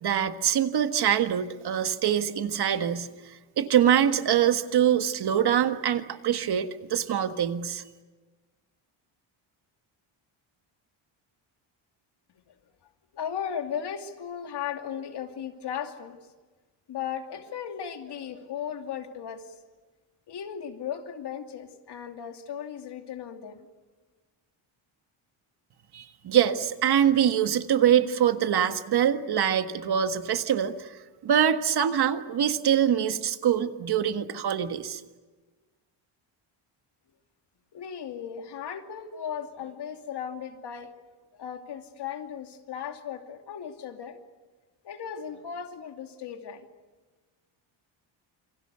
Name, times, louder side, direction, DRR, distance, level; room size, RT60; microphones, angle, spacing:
voice 1, 0.0-3.1 3.6-7.8 25.9-35.0, right 9 dB, 50° right, 8 dB, 1.7 m, -24 dB
voice 2, 13.1-16.2 16.9-19.6 20.3-23.7 37.7-40.9 41.3-44.2 44.8-46.7, left 8 dB, 55° left, 5 dB, 2.7 m, -36 dB
28.5 x 26.0 x 6.9 m, 1.3 s
cardioid pair, 155°, 49 cm